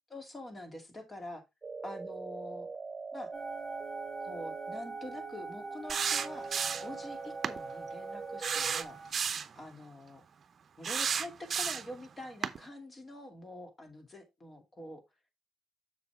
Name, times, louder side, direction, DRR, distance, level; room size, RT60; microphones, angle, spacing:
voice 1, 0.1-1.4 1.8-2.7 3.1-3.3 4.2-6.5 6.8-9.0 9.5-10.2 10.8-15.0, left 1 dB, 30° left, 5 dB, 2.5 m, -45 dB
sound 1, 1.6-8.8, right 4 dB, 25° right, 1.3 m, -43 dB
sound 2, 3.3-9.1, right 4 dB, 10° left, 3.4 m, -45 dB
sound 3, 5.9-7.0 7.4-7.6 8.4-9.5 10.8-12.0 12.4-12.6, right 7 dB, 50° right, 0.7 m, -32 dB
6.8 x 6.7 x 3.4 m, 0.21 s
cardioid pair, 90°, 0 cm